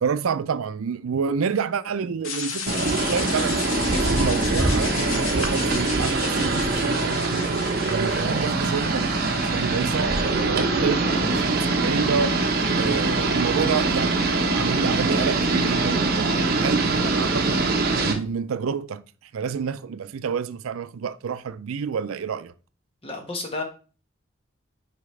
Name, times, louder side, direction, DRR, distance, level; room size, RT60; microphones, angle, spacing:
voice 1, 0.0-7.5 7.9-12.3 12.8-14.3 14.5-17.6 18.0-19.0 19.3-22.5, right 6 dB, 85° right, 0.4 m, -29 dB
sound 1, 2.2-10.3, left 5 dB, 80° left, 1.1 m, -34 dB
sound 2, 2.7-18.1, right 3 dB, 45° right, 1.1 m, -23 dB
voice 2, 23.0-23.6, left 2 dB, 25° left, 1.3 m, -31 dB
8.4 x 4.9 x 3.2 m
head